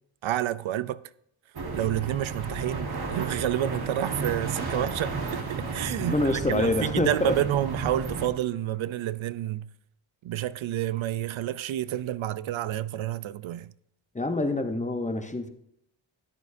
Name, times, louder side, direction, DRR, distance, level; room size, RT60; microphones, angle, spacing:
voice 1, 0.2-1.0 1.7-6.2 6.5-9.7 10.2-13.7, right 12 dB, 80° right, 0.5 m, -29 dB
sound 1, 1.5-8.3, right 4 dB, 55° right, 1.4 m, -33 dB
voice 2, 6.0-7.4 14.1-15.5, left 2 dB, 15° left, 0.7 m, -26 dB
13.5 x 11.0 x 2.6 m
wide cardioid pair, 175°, 46 cm